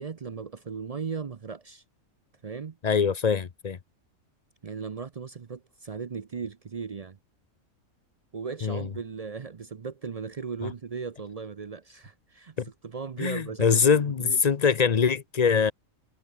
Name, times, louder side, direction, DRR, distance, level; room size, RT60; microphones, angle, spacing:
voice 1, 0.0-1.8 2.4-2.8 4.6-7.2 8.3-12.6 12.8-14.4, right 5 dB, 50° right, 0.4 m, -37 dB
voice 2, 2.8-3.8 8.6-8.9 10.6-10.7 12.6-12.7 13.2-15.7, left 6 dB, 40° left, 0.6 m, -23 dB
omnidirectional pair, 1.5 m